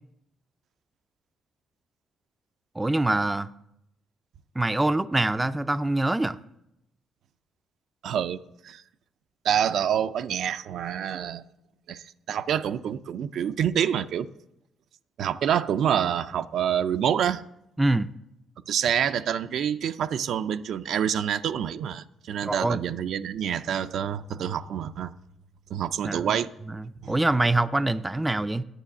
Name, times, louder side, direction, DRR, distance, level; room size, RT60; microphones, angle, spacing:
voice 1, 2.8-3.5 4.6-6.4 17.8-18.1 22.4-22.8 26.0-26.4 26.7-28.6, right 2 dB, 15° right, 0.4 m, -25 dB
voice 2, 8.0-8.4 8.6-8.8 9.4-11.4 11.9-14.3 15.2-17.4 18.7-25.1 25.7-26.5 27.0-27.1, right 9 dB, 70° right, 0.5 m, -27 dB
9.1 x 6.9 x 8.3 m
cardioid pair, 90°, 0 cm